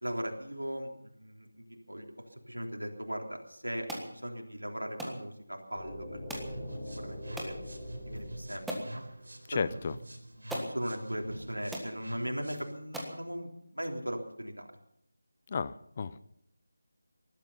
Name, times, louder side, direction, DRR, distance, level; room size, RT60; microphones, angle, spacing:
voice 1, 0.0-6.4 6.7-7.6 8.1-9.0 9.5-9.7 10.2-14.7, equal, 90° right, 2 dB, 3.5 m, -39 dB
sound 1, 3.9-4.1 5.0-5.2 6.3-6.5 7.4-7.6 8.2-8.3 8.7-8.9 10.0-10.1 10.5-10.7 11.4-11.5 11.7-11.9 12.5-12.6 12.9-13.2, equal, ahead, 1.5 m, -38 dB
sound 2, 5.8-9.7, left 1 dB, 15° left, 7.8 m, -43 dB
sound 3, 6.4-12.8, right 1 dB, 70° right, 4.3 m, -46 dB
voice 2, 9.6-9.9 15.5-16.3, left 5 dB, 30° left, 15 dB, 0.7 m, -33 dB
19.5 x 12.5 x 5.6 m, 0.73 s
figure-of-eight pair, 165°, 0 cm